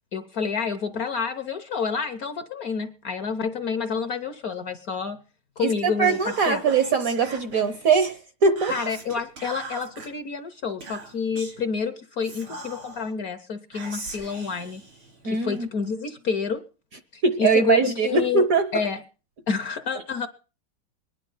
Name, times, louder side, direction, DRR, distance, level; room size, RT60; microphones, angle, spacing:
voice 1, 0.1-5.2 5.6-6.6 8.7-14.8 15.2-16.6 17.1-18.5 18.7-19.0 19.5-20.3, left 5 dB, 55° left, 1.1 m, -29 dB
voice 2, 5.6-8.7 15.2-15.7 17.2-18.7, right 5 dB, 55° right, 1.0 m, -22 dB
Whispering, 6.0-8.2 8.6-10.1 10.8-11.6 12.2-13.1 13.7-15.6, right 3 dB, 85° right, 4.3 m, -40 dB
22.0 x 10.5 x 5.5 m
omnidirectional pair, 2.3 m